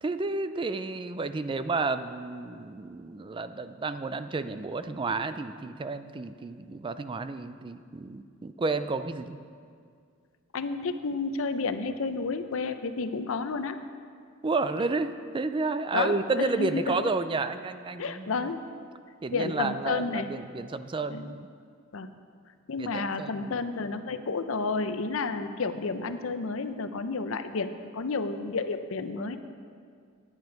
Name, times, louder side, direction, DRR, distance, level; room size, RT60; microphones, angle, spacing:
voice 1, 0.0-9.4 14.4-18.3 19.2-21.5 22.8-23.6, right 3 dB, 25° right, 11 dB, 0.4 m, -31 dB
voice 2, 10.5-13.8 15.9-17.1 18.0-18.6 19.3-20.3 21.1-21.3 21.9-22.1 22.7-29.4, left 4 dB, 70° left, 10 dB, 0.6 m, -31 dB
10.5 x 9.8 x 5.2 m, 2.2 s
head